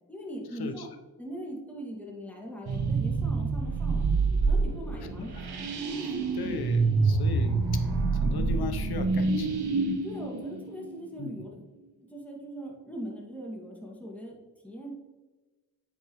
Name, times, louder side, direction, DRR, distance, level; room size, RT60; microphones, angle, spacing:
voice 1, 0.1-0.9 1.2-4.1 4.5-5.4 10.0-11.6 12.1-14.3 14.6-14.9, equal, 5° left, -3 dB, 2.0 m, -40 dB
sound 1, 2.7-11.3, right 3 dB, 85° right, 1.2 m, -27 dB
voice 2, 6.0-7.7 8.1-9.6 11.2-11.3, left 3 dB, 75° left, 8 dB, 0.8 m, -37 dB
9.5 x 4.5 x 3.1 m, 1.2 s
cardioid pair, 55°, 38 cm